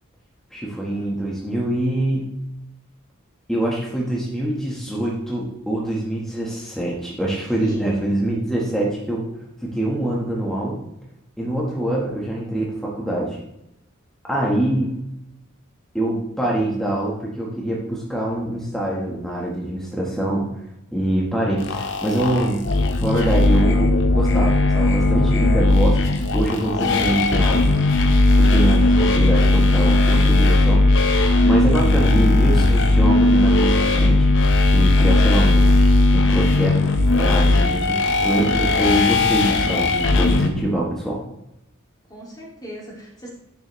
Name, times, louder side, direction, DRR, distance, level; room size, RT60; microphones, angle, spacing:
voice 1, 0.5-2.3 3.5-9.3 9.6-10.8 11.4-13.4 14.2-14.9 15.9-20.5 20.9-22.6 23.0-26.0 26.3-27.6 28.4-35.6 36.1-41.2, right 1 dB, ahead, -4 dB, 1.3 m, -24 dB
sound 1, 21.6-40.5, left 2 dB, 60° left, 1.0 m, -17 dB
voice 2, 26.8-27.3 42.1-43.3, equal, 20° left, -2 dB, 2.2 m, -35 dB
10.0 x 6.7 x 3.1 m, 0.85 s
head